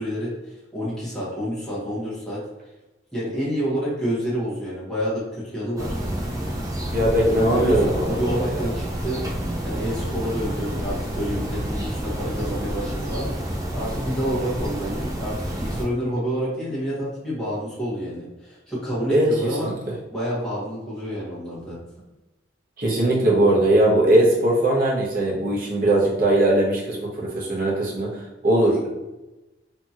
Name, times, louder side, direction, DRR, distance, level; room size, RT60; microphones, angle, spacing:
voice 1, 0.0-2.4 3.1-5.9 7.3-9.2 9.6-19.7 20.1-21.8, equal, ahead, -10 dB, 1.1 m, -28 dB
sound 1, 5.8-15.9, equal, 15° right, 0.4 m, -29 dB
voice 2, 6.9-8.6 19.1-19.9 22.8-28.9, right 1 dB, 45° right, -4 dB, 0.8 m, -20 dB
2.8 x 2.8 x 2.4 m, 1.0 s
head